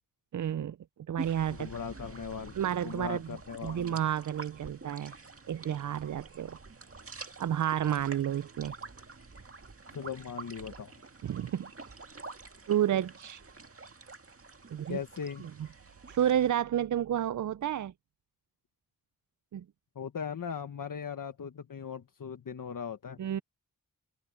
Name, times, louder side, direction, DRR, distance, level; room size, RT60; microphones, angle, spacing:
voice 1, 0.3-0.8 1.1-1.7 2.6-3.2 3.6-5.1 5.5-6.6 7.4-8.7 11.2-11.7 12.7-13.4 14.7-15.0 16.1-17.9 19.5-19.6 23.2-23.4, right 10 dB, 60° right, 0.5 m, -30 dB
sound 1, 1.2-16.5, right 4 dB, 40° right, 1.9 m, -47 dB
voice 2, 1.5-2.6 2.8-4.0 9.9-10.9 14.9-15.5 19.9-23.2, left 7 dB, 70° left, 1.3 m, -39 dB
wide cardioid pair, 65°, 34 cm